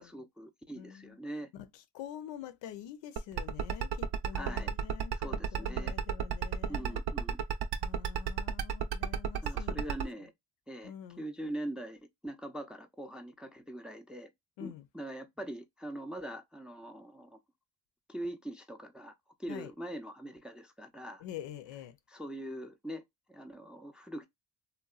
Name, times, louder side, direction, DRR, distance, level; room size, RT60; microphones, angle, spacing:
voice 1, 0.0-1.5 4.3-4.7 5.1-6.0 6.7-7.4 9.4-10.3 10.7-14.3 14.6-17.4 18.1-19.1 19.4-21.2 22.1-23.0 23.3-24.3, right 1 dB, ahead, 0.4 m, -42 dB
voice 2, 0.8-1.2 1.5-7.0 7.8-10.0 10.8-11.2 14.6-14.9 19.5-19.7 21.2-22.0, left 10 dB, 85° left, 0.6 m, -46 dB
sound 1, 3.2-10.0, right 9 dB, 65° right, 0.5 m, -32 dB
2.8 x 2.2 x 2.3 m
cardioid pair, 75°, 42 cm